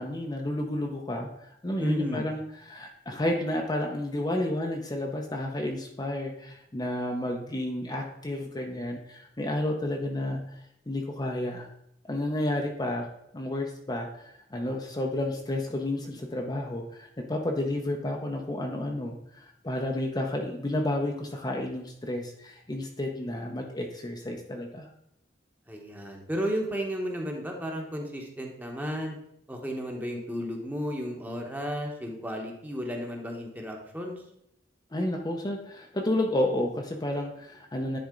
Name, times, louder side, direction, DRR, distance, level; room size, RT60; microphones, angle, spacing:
voice 1, 0.0-10.6 10.9-11.7 12.1-13.0 13.3-24.9 34.9-38.0, left 1 dB, 25° left, 1 dB, 0.7 m, -31 dB
voice 2, 1.8-2.2 25.7-29.2 29.5-34.2, equal, 10° right, 1 dB, 1.1 m, -33 dB
10.5 x 4.3 x 3.8 m, 0.73 s
head